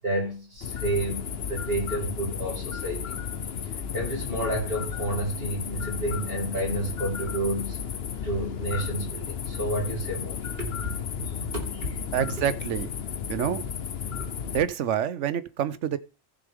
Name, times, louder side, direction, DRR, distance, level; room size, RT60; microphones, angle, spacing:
voice 1, 0.0-3.2 3.6-7.8 8.2-10.5 10.8-10.9 11.2-12.0, right 1 dB, 55° right, 5.3 m, -30 dB
sound 1, 0.6-14.6, left 7 dB, 60° left, 1.0 m, -33 dB
voice 2, 12.1-12.9 13.3-13.6 14.4-16.0, right 9 dB, 85° right, 1.1 m, -27 dB
15.0 x 6.9 x 3.6 m
omnidirectional pair, 1.2 m